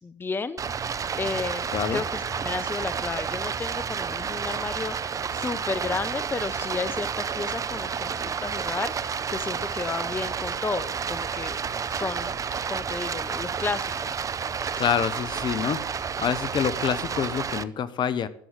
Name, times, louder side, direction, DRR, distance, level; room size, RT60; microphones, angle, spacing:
voice 1, 0.0-0.6 1.2-11.6 11.9-12.4 12.7-13.9, left 4 dB, 20° left, 14 dB, 0.8 m, -32 dB
Stream, 0.6-17.6, right 6 dB, 30° right, 0.7 m, -30 dB
voice 2, 1.7-2.0 14.8-15.8 16.2-18.3, left 8 dB, 45° left, 16 dB, 0.9 m, -26 dB
11.5 x 7.9 x 7.8 m, 0.67 s
hypercardioid pair, 70°, 11 cm